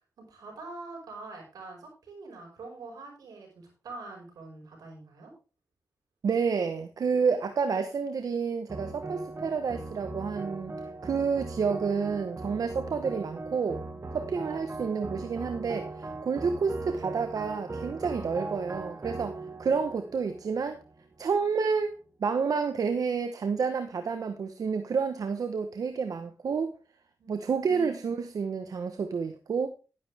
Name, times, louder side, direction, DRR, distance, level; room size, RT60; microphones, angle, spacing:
voice 1, 0.2-5.3 27.2-27.5, right 3 dB, 90° right, 5.4 m, -45 dB
voice 2, 6.2-10.7 11.0-13.8 14.1-20.8 21.2-26.7 27.3-29.7, right 5 dB, 70° right, 1.1 m, -29 dB
sound 1, 8.7-21.2, right 3 dB, 40° right, 2.2 m, -39 dB
11.5 x 10.5 x 3.5 m
cardioid pair, 60°, 6 cm